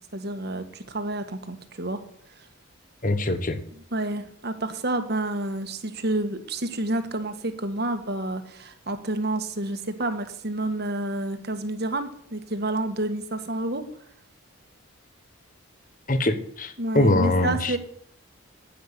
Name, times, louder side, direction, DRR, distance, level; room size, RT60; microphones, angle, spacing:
voice 1, 0.1-2.0 3.9-13.9 16.8-17.8, right 1 dB, 50° right, 8 dB, 1.5 m, -29 dB
voice 2, 3.0-3.6 16.1-17.8, left 2 dB, 40° left, 11 dB, 1.2 m, -23 dB
10.0 x 9.3 x 8.2 m, 0.65 s
head